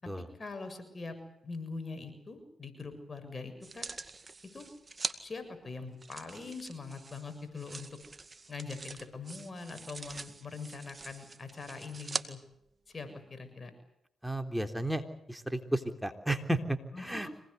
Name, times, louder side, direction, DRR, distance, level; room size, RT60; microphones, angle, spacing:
voice 1, 0.0-1.2 1.4-3.9 4.5-4.7 5.2-8.0 8.5-12.4 12.9-13.7 16.9-17.3, left 4 dB, 40° left, 8 dB, 7.0 m, -43 dB
sound 1, 3.6-5.2 6.0-12.3 12.9-13.0, right 3 dB, 35° right, 2.1 m, -43 dB
voice 2, 14.2-15.0 15.3-17.3, right 1 dB, 5° right, 7 dB, 3.5 m, -33 dB
26.0 x 20.0 x 8.2 m, 0.77 s
supercardioid pair, 50°, 0 cm